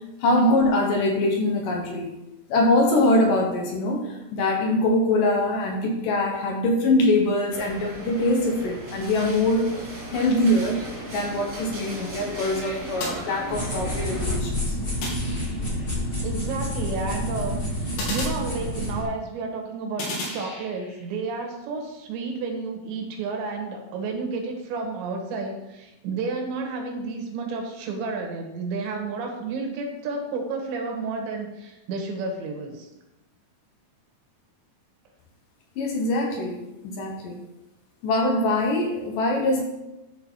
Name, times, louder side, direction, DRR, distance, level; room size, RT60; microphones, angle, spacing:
voice 1, 0.2-2.1 2.5-9.7 10.1-10.8 11.1-14.8 35.8-37.5 38.0-39.6, left 1 dB, 70° left, 2 dB, 2.2 m, -23 dB
sound 1, 7.5-14.4, right 1 dB, 35° right, 1.2 m, -37 dB
sound 2, 13.0-13.9 15.0-15.9 18.0-19.1 20.0-21.1, left 2 dB, 90° left, 4.7 m, -34 dB
sound 3, 13.5-19.0, left 1 dB, 35° left, 0.8 m, -28 dB
voice 2, 16.2-32.9, right 4 dB, 75° right, 3 dB, 3.7 m, -31 dB
12.5 x 4.7 x 6.2 m, 0.95 s
omnidirectional pair, 5.2 m